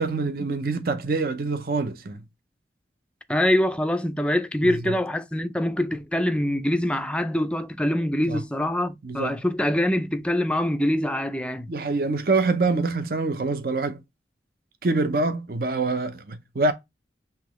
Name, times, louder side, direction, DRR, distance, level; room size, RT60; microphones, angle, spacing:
voice 1, 0.0-2.2 4.6-5.0 8.3-8.4 9.0-9.4 11.7-14.0 14.8-16.7, right 3 dB, 55° right, 0.6 m, -25 dB
voice 2, 3.3-11.7, left 1 dB, 5° left, 0.4 m, -24 dB
5.8 x 3.0 x 3.0 m
head